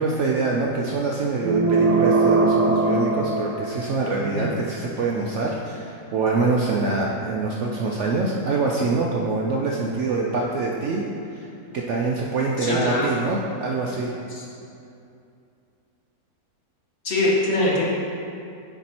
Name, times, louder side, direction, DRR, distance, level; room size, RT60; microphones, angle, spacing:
voice 1, 0.0-11.5 11.7-14.1, right 3 dB, 65° right, -2 dB, 0.7 m, -25 dB
sound 1, 1.4-4.1, right 3 dB, 85° right, 1.2 m, -20 dB
voice 2, 12.6-13.1 14.3-14.4 17.0-17.8, left 2 dB, 45° left, -5 dB, 1.2 m, -22 dB
10.0 x 3.5 x 4.2 m, 2.6 s
omnidirectional pair, 1.7 m